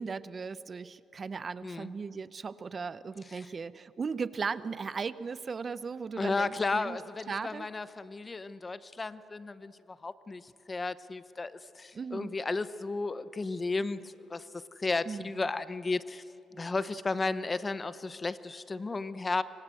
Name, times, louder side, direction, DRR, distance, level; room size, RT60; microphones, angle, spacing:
voice 1, 0.0-7.0 7.3-7.7 11.9-12.4 15.1-15.5, right 5 dB, 40° right, 15 dB, 0.8 m, -37 dB
voice 2, 1.6-1.9 3.3-3.5 6.2-16.2 16.5-19.4, left 3 dB, 25° left, 14 dB, 0.9 m, -34 dB
26.0 x 25.0 x 7.8 m, 2.6 s
cardioid pair, 90°, 0 cm